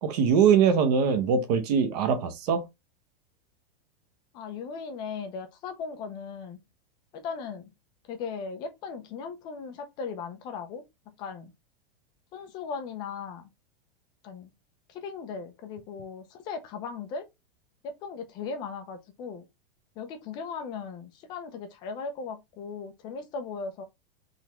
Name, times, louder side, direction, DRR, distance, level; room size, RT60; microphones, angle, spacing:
voice 1, 0.0-2.7, right 7 dB, 45° right, 0.8 m, -22 dB
voice 2, 4.3-6.6 7.1-7.7 8.1-10.8 11.2-11.5 12.3-13.5 14.2-14.5 14.9-17.3 17.8-19.5 20.0-23.8, left 5 dB, 15° left, 0.4 m, -37 dB
4.0 x 3.3 x 2.9 m
supercardioid pair, 175°, 29 cm